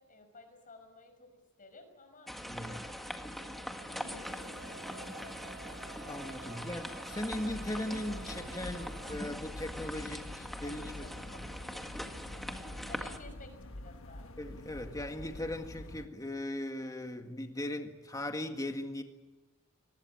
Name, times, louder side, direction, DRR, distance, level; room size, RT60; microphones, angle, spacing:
voice 1, 0.0-2.8 3.3-5.4 6.4-6.7 10.4-11.8 12.3-14.3, left 2 dB, 40° left, 6 dB, 5.8 m, -55 dB
sound 1, 2.3-13.2, equal, ahead, 1.7 m, -42 dB
voice 2, 2.4-2.8 6.1-11.1 14.4-19.0, left 1 dB, 15° left, 5 dB, 1.9 m, -38 dB
Male singing, 3.9-9.2, right 4 dB, 55° right, 1.6 m, -51 dB
sound 2, 7.3-16.1, left 1 dB, 70° left, 1.4 m, -47 dB
23.5 x 20.0 x 9.7 m, 1.1 s
head